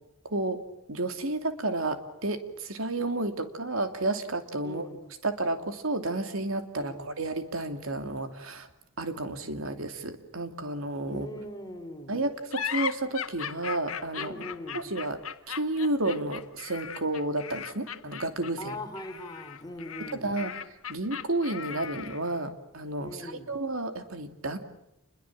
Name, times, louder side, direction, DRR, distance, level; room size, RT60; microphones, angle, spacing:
voice 1, 0.2-0.6 0.9-4.9 5.2-8.7 9.0-11.3 12.1-14.5 14.7-15.2 15.5-18.8 20.1-20.5 20.9-24.6, right 2 dB, 75° right, 7 dB, 2.9 m, -31 dB
voice 2, 4.6-5.0 6.8-7.1 11.1-12.2 14.2-14.8 18.6-20.3 23.0-23.5, left 1 dB, 20° left, 5 dB, 4.0 m, -41 dB
sound 1, 12.5-22.3, left 8 dB, 85° left, 1.6 m, -37 dB
29.0 x 22.0 x 7.6 m, 0.85 s
head